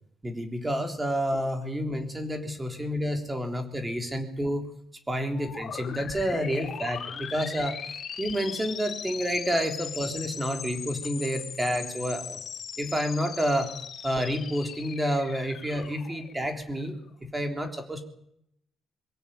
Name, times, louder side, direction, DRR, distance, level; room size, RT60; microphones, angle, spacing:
voice 1, 0.2-4.7 5.1-7.8 8.2-12.4 12.8-13.7 14.0-18.0, equal, 15° right, 5 dB, 3.5 m, -29 dB
sound 1, 5.3-17.0, left 7 dB, 50° left, 3.7 m, -39 dB
23.0 x 17.0 x 9.1 m, 0.73 s
cardioid pair, 145°, 0 cm